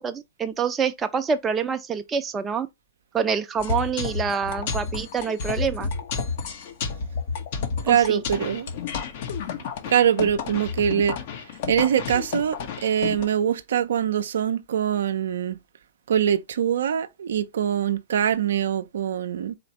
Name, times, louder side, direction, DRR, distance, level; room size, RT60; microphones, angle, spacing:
voice 1, 0.0-2.7 3.1-5.9 7.9-8.2, right 6 dB, 20° right, 0.5 m, -26 dB
sound 1, 3.6-13.2, left 5 dB, 60° left, 1.1 m, -31 dB
voice 2, 7.8-8.7 9.9-11.2 11.7-15.6 16.1-19.6, right 9 dB, 75° right, 0.5 m, -23 dB
4.3 x 3.2 x 2.9 m
hypercardioid pair, 120°, 0 cm